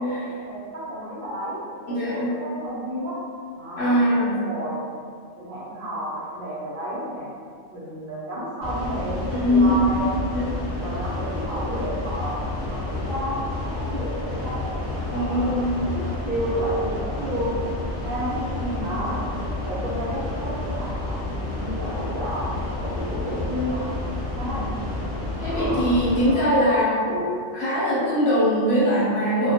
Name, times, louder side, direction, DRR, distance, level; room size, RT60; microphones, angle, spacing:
voice 1, 0.0-3.2 3.5-4.9 5.4-7.3 7.7-10.1 10.7-14.8 15.2-17.5 18.0-18.3 18.8-19.3 19.6-23.8 24.3-24.6 25.4-25.9 26.2-26.6, equal, 55° right, -10 dB, 0.6 m, -32 dB
voice 2, 1.9-2.3 3.8-4.4 9.3-10.5 15.1-15.8 18.3-18.9 24.4-24.6 25.4-29.5, equal, 65° left, -7 dB, 0.8 m, -22 dB
sound 1, 8.6-26.3, left 2 dB, 25° left, 0.8 m, -30 dB
2.2 x 2.1 x 2.6 m, 2.1 s
omnidirectional pair, 1.3 m